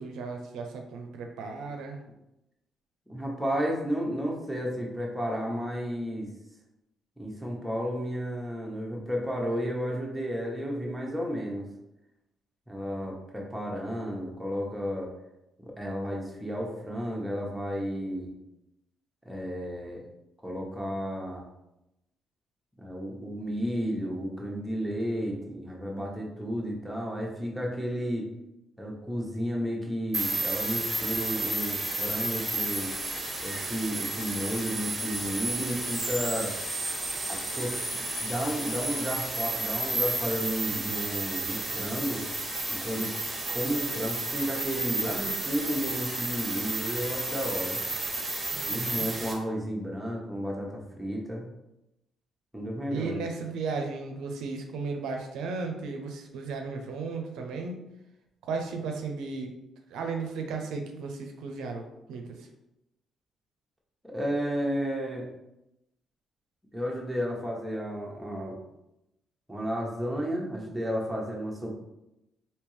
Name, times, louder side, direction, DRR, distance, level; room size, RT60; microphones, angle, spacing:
voice 1, 0.0-2.0 48.5-49.1 52.9-57.8 58.4-59.5 59.9-62.5, right 4 dB, 85° right, 3 dB, 0.5 m, -35 dB
voice 2, 3.1-6.3 7.2-11.7 12.7-15.1 15.6-18.3 19.2-20.0 20.4-21.4 22.8-28.3 28.8-32.9 33.4-36.5 37.3-42.2 42.7-43.1 43.5-47.8 48.7-51.5 52.5-53.2 64.0-65.3 66.7-68.6 69.5-71.7, equal, 5° right, -2 dB, 1.0 m, -32 dB
sound 1, 30.1-49.3, right 2 dB, 20° right, 1.1 m, -32 dB
3.5 x 2.7 x 3.1 m, 0.89 s
cardioid pair, 90°, 0 cm